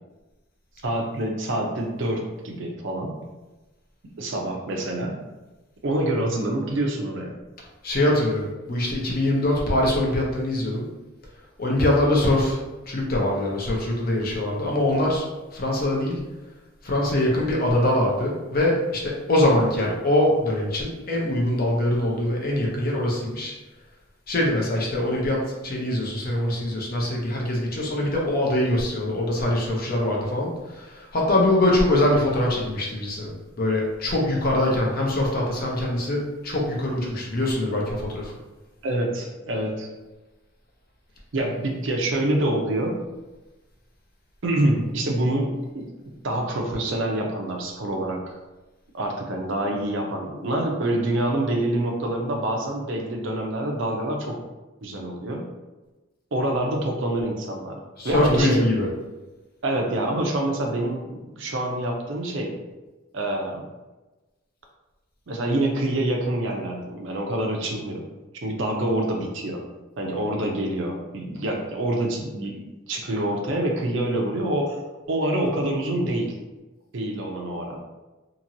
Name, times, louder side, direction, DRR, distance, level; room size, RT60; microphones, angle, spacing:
voice 1, 0.8-3.2 4.2-5.2 5.8-7.4 38.8-39.9 41.3-43.0 44.4-45.9 46.2-48.4 48.9-54.4 54.8-55.4 56.3-57.8 58.0-58.6 59.6-62.5 63.1-63.6 65.3-68.0 68.4-69.6 70.0-72.6 72.9-74.8 75.1-76.3 76.9-77.8, right 1 dB, 65° right, 1 dB, 0.5 m, -26 dB
voice 2, 7.8-10.9 11.6-12.6 12.9-15.3 15.5-16.2 16.8-23.5 24.3-38.3 58.0-58.9 68.8-68.9, left 1 dB, 45° left, -2 dB, 0.7 m, -23 dB
2.9 x 2.6 x 2.6 m, 1.1 s
head